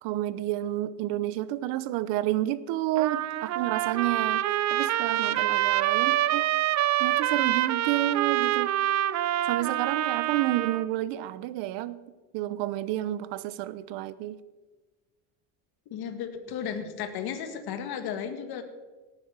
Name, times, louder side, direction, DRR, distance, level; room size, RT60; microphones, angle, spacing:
voice 1, 0.0-6.5 7.0-8.7 9.5-12.0 12.3-14.4, right 14 dB, 70° right, 15 dB, 1.0 m, -30 dB
Trumpet, 3.0-10.9, right 13 dB, 40° right, 0.6 m, -26 dB
voice 2, 15.9-18.6, left 8 dB, 55° left, 7 dB, 1.9 m, -34 dB
18.0 x 8.8 x 6.2 m, 1.2 s
cardioid pair, 130°, 43 cm